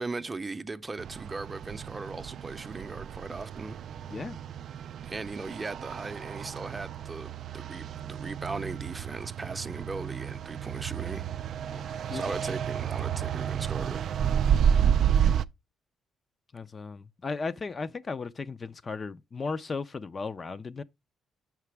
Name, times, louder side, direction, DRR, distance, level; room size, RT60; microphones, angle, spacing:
voice 1, 0.0-3.8 5.0-11.3 12.1-14.0, right 3 dB, 25° right, 0.6 m, -38 dB
sound 1, 1.0-15.4, right 8 dB, 65° right, 0.3 m, -30 dB
voice 2, 11.7-12.3 16.5-20.8, left 4 dB, 35° left, 0.4 m, -36 dB
7.5 x 5.9 x 3.3 m
cardioid pair, 90°, 0 cm